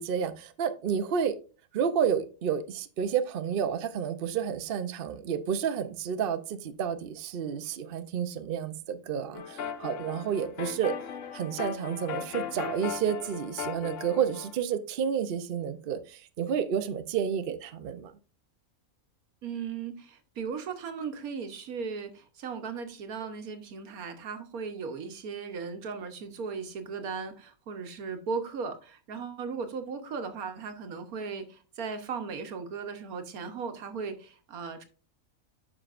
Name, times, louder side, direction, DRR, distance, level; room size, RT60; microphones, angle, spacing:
voice 1, 0.0-1.3 1.7-10.9 11.3-18.1, right 8 dB, 50° right, 0.7 m, -30 dB
sound 1, 9.3-14.6, left 7 dB, 65° left, 1.1 m, -37 dB
voice 2, 19.4-34.8, right 5 dB, 85° right, 1.5 m, -37 dB
9.7 x 6.2 x 2.5 m
omnidirectional pair, 1.5 m